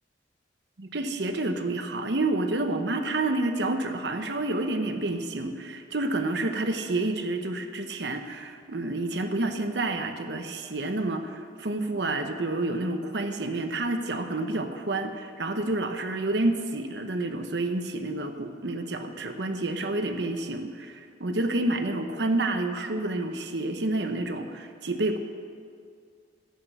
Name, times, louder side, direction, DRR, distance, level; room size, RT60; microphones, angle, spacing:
voice 1, 0.8-25.2, right 2 dB, 65° right, 6 dB, 0.9 m, -29 dB
11.5 x 8.4 x 7.9 m, 2.2 s
head